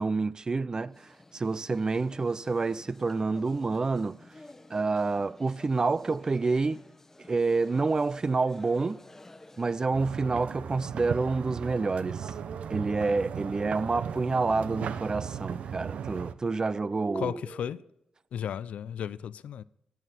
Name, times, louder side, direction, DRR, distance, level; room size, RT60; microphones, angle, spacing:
voice 1, 0.0-4.2 4.7-6.8 7.3-9.0 9.6-12.3 12.7-17.4, right 3 dB, 35° right, 0.5 m, -28 dB
sound 1, 0.8-10.0, left 2 dB, 20° left, 1.0 m, -52 dB
sound 2, 9.9-16.3, right 7 dB, 80° right, 0.7 m, -36 dB
sound 3, 16.5-17.9, right 2 dB, 50° right, 2.5 m, -45 dB
voice 2, 17.1-17.8 18.3-19.6, left 9 dB, 80° left, 0.4 m, -34 dB
15.0 x 9.0 x 4.3 m
cardioid pair, 70°, 2 cm